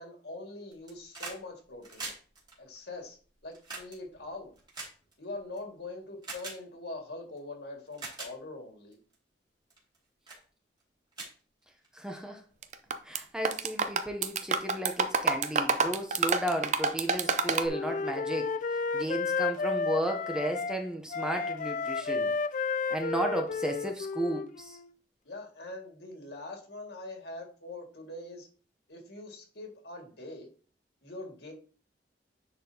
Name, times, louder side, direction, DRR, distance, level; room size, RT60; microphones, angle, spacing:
voice 1, 0.0-2.1 2.6-3.2 3.4-4.5 5.2-9.0 25.2-28.5 28.9-30.5 31.0-31.5, left 2 dB, 65° left, 2.0 m, -43 dB
sound 1, 0.7-1.4 1.7-5.6 6.2-6.6 7.4-7.5 7.9-8.3 8.9-9.1 9.7-10.0 10.3-10.4 10.8-10.9 11.1-12.1 13.2-13.3, right 3 dB, 25° right, 2.3 m, -43 dB
voice 2, 11.9-12.4 13.0-18.5 18.9-22.3 22.9-24.8, right 1 dB, 5° right, 0.7 m, -34 dB
sound 2, 12.6-13.2 13.4-17.7, right 5 dB, 40° right, 0.5 m, -27 dB
Wind instrument woodwind instrument, 17.2-20.8 21.1-24.9, left 4 dB, 45° left, 0.3 m, -32 dB
9.9 x 4.4 x 2.8 m
head